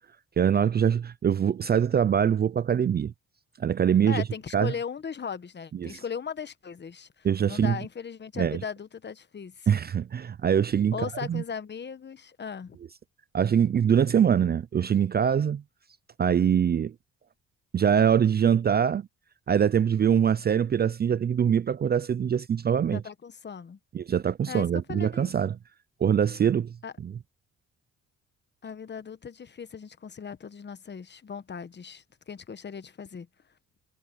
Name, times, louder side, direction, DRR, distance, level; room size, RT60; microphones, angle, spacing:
voice 1, 0.4-3.1 3.6-4.2 4.5-4.7 5.8-6.0 7.2-7.8 8.4-8.6 9.7-10.9 11.3-11.4 13.3-15.6 16.2-16.9 17.7-19.1 19.5-23.0 23.9-25.5 26.0-26.7 27.0-27.1, right 8 dB, 35° right, 0.4 m, -23 dB
voice 2, 4.1-9.8 10.9-12.8 22.9-23.8 24.5-25.3 26.8-26.9 28.6-33.3, left 6 dB, 35° left, 1.2 m, -38 dB
cardioid pair, 90°, 30 cm